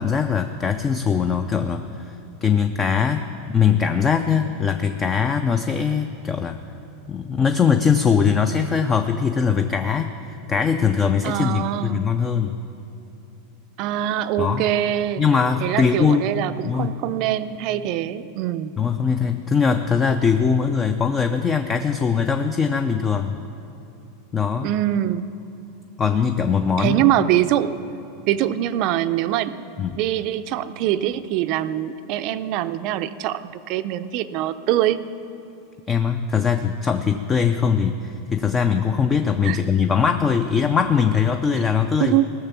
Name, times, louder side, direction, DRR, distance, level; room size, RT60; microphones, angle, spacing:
voice 1, 0.0-2.1 2.4-6.6 7.1-12.6 14.4-14.7 15.2-16.3 16.6-17.0 18.8-23.4 24.3-24.7 26.0-27.1 29.8-30.0 35.9-42.2, left 6 dB, 15° left, 7 dB, 0.4 m, -21 dB
voice 2, 11.2-12.1 13.8-15.2 15.6-18.7 24.6-25.3 26.8-27.8 28.3-29.6 30.0-35.0 39.4-39.6 42.0-42.3, right 12 dB, 40° right, 12 dB, 0.5 m, -23 dB
18.5 x 6.7 x 7.0 m, 2.9 s
supercardioid pair, 160°, 0 cm